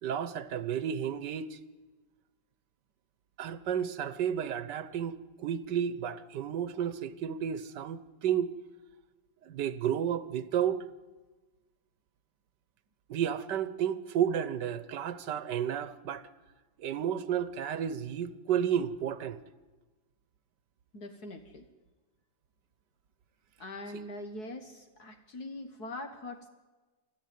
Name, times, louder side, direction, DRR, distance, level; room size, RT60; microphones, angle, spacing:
voice 1, 0.0-1.6 3.4-8.5 9.4-10.8 13.1-16.3 16.8-19.4, right 9 dB, 80° right, 1.7 m, -32 dB
voice 2, 20.9-21.7 23.6-26.5, left 1 dB, 65° left, 2.0 m, -42 dB
26.0 x 15.0 x 9.5 m
omnidirectional pair, 1.8 m